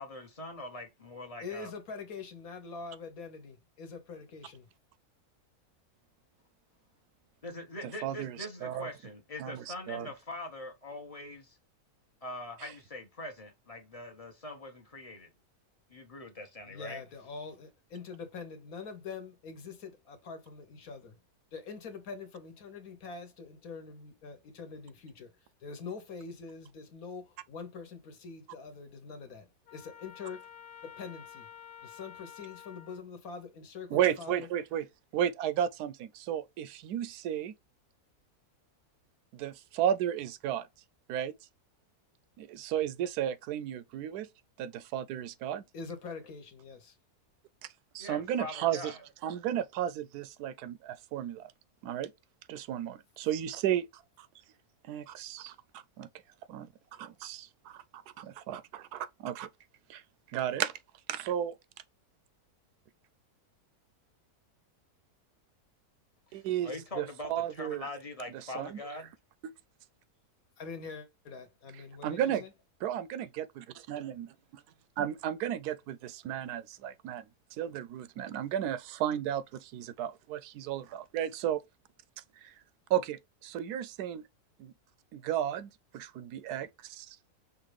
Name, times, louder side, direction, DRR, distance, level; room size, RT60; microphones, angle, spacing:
voice 1, 0.0-1.7 7.4-11.6 12.2-15.3 15.9-17.0 48.0-49.0 66.3-69.1, left 1 dB, 30° left, 0.8 m, -43 dB
voice 2, 1.4-4.7 16.7-21.2 21.5-25.3 25.6-30.5 30.8-31.5 31.8-34.5 45.7-46.9 70.6-72.5, left 5 dB, 70° left, 1.4 m, -44 dB
voice 3, 7.8-8.9 9.4-10.1 12.6-12.7 33.9-34.9 35.1-37.5 39.3-40.7 41.1-41.3 42.4-44.3 44.6-45.6 47.9-48.9 49.2-51.5 51.8-52.1 52.5-54.3 54.9-56.1 56.5-59.5 59.9-60.0 60.3-60.7 61.1-61.5 66.3-67.9 68.3-68.8 69.4-69.5 72.0-72.4 72.8-74.3 75.0-77.2 77.6-81.6 82.4-82.5 82.9-84.2 84.6-84.7 85.1-87.2, right 10 dB, 90° right, 1.1 m, -34 dB
Trumpet, 29.7-33.0, left 9 dB, 85° left, 1.2 m, -50 dB
5.6 x 2.5 x 3.2 m
omnidirectional pair, 1.6 m